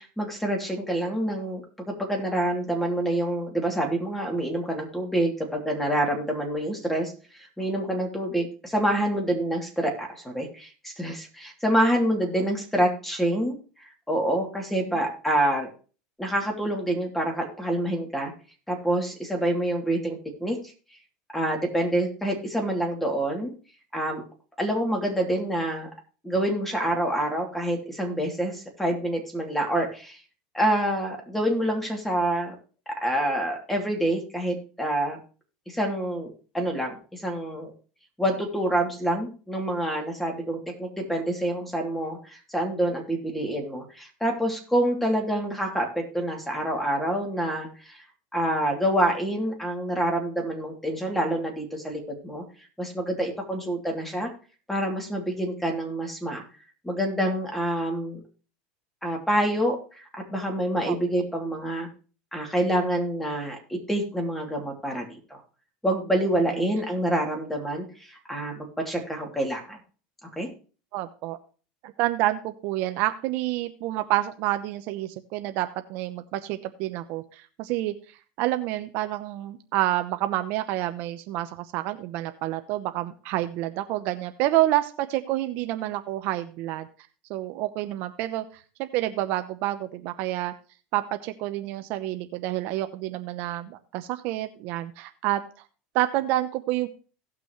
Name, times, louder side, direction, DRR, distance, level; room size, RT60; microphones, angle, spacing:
voice 1, 0.0-15.7 16.2-18.3 18.7-20.6 21.3-23.5 23.9-24.2 24.6-25.9 26.2-30.2 30.5-32.5 32.9-35.2 35.7-37.7 38.2-48.0 48.3-52.4 52.8-54.3 54.7-56.4 56.8-58.2 59.0-61.9 62.3-65.4 65.8-69.8 70.4-70.5, right 1 dB, 5° left, 2 dB, 2.9 m, -27 dB
voice 2, 70.9-71.4 71.8-77.9 78.4-86.9 87.3-88.4 88.8-90.5 90.9-95.4 95.9-96.9, right 15 dB, 60° right, 9 dB, 0.8 m, -28 dB
17.5 x 6.0 x 3.1 m, 0.37 s
supercardioid pair, 125°, 4 cm